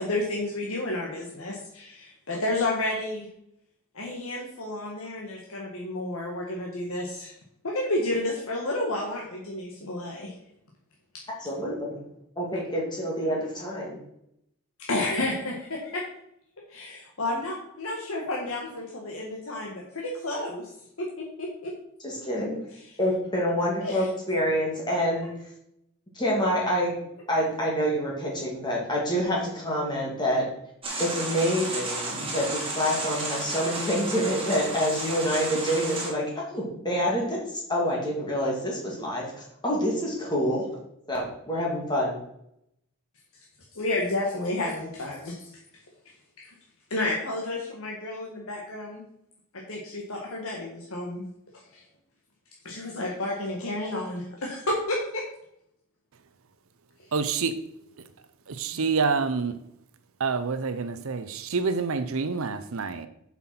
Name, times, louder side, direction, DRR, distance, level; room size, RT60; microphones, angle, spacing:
voice 1, 0.0-3.3 3.9-7.3 7.6-10.3 14.8-16.0 16.7-20.7 21.0-21.1 21.4-21.7 22.8-22.9 23.8-24.0 43.7-45.4 46.4-46.5 46.9-49.0 49.5-51.2 51.5-51.8 52.6-55.2, left 2 dB, 65° left, -2 dB, 1.6 m, -31 dB
voice 2, 11.4-12.0 12.4-14.0 22.0-22.6 23.0-25.3 26.1-27.0 27.3-30.4 31.0-37.4 37.7-40.7 41.1-42.2, equal, 20° left, -3 dB, 2.3 m, -27 dB
sound 1, 30.8-36.1, right 2 dB, 25° right, 2.4 m, -33 dB
voice 3, 57.1-57.6 58.5-59.6 60.2-63.1, right 4 dB, 65° right, 12 dB, 0.6 m, -27 dB
7.7 x 5.8 x 5.9 m, 0.76 s
head